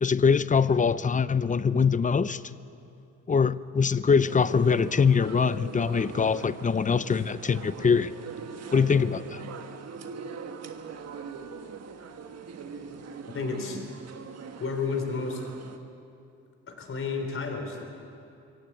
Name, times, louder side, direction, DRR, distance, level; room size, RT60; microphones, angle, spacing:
voice 1, 0.0-2.4 3.3-8.1 8.7-9.4, left 5 dB, 25° left, 16 dB, 0.6 m, -23 dB
sound 1, 4.3-15.8, right 5 dB, 55° right, 1.6 m, -41 dB
voice 2, 13.3-13.8 14.6-15.5 16.7-17.8, left 4 dB, 45° left, 3 dB, 4.3 m, -31 dB
24.5 x 17.0 x 8.4 m, 2.6 s
cardioid pair, 90°, 30 cm